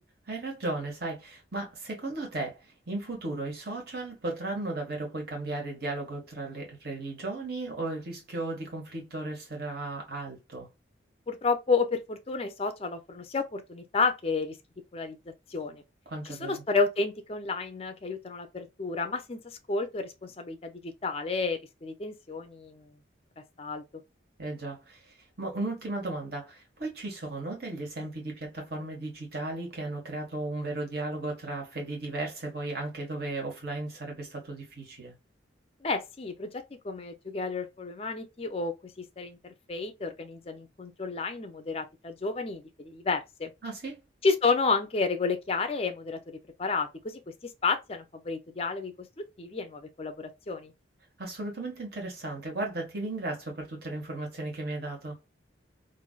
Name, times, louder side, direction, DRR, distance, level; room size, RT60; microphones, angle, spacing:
voice 1, 0.2-10.7 16.0-16.6 24.4-35.1 43.6-44.0 51.2-55.2, right 2 dB, 55° right, 1.4 m, -35 dB
voice 2, 11.3-14.6 14.9-15.2 15.5-15.8 16.4-22.9 23.6-23.8 35.8-36.5 36.8-43.5 44.2-50.7, left 4 dB, 30° left, 0.4 m, -31 dB
3.2 x 2.6 x 2.2 m
head